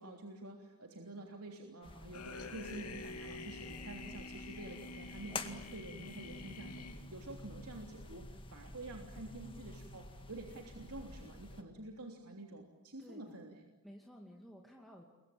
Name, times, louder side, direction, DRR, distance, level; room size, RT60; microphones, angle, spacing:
voice 1, 0.0-13.7, right 2 dB, 75° right, 2 dB, 3.2 m, -49 dB
sound 1, 1.8-11.6, left 2 dB, 25° left, 2.0 m, -49 dB
sound 2, 2.1-7.4, left 3 dB, 85° left, 3.4 m, -48 dB
voice 2, 6.4-6.8 13.0-13.3 13.8-15.0, equal, ahead, -1 dB, 2.6 m, -55 dB
29.0 x 23.0 x 8.8 m, 1.1 s
head